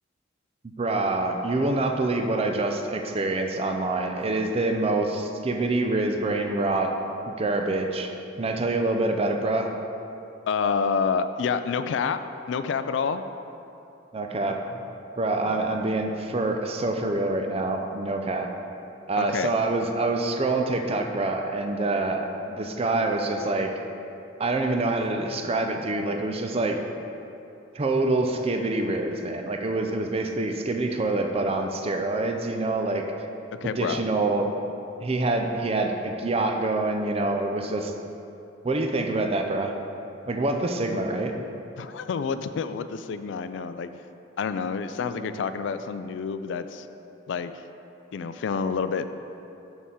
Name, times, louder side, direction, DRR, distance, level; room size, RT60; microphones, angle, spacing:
voice 1, 0.8-6.9 7.3-8.1 8.4-9.7 14.1-14.8 15.2-18.5 19.1-23.7 24.4-26.8 27.7-33.3 33.6-34.5 35.0-37.9 38.6-39.7 40.3-41.4 45.1-45.3, right 2 dB, 30° right, 4 dB, 0.5 m, -26 dB
voice 2, 10.5-12.2 12.5-13.2 15.4-15.7 19.2-19.5 33.6-34.0 41.8-43.9 44.4-46.9 47.3-47.5 48.1-49.1, left 6 dB, 65° left, 11 dB, 0.3 m, -28 dB
6.9 x 6.2 x 3.8 m, 2.8 s
head